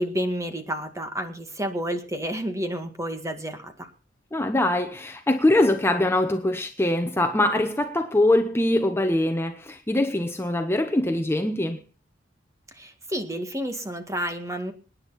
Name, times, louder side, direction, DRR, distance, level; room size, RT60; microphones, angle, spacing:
voice 1, 0.0-3.9 12.7-14.7, equal, 15° right, 2.0 m, -30 dB
voice 2, 4.3-11.8, left 1 dB, 15° left, 0.9 m, -23 dB
27.0 x 10.0 x 4.1 m
head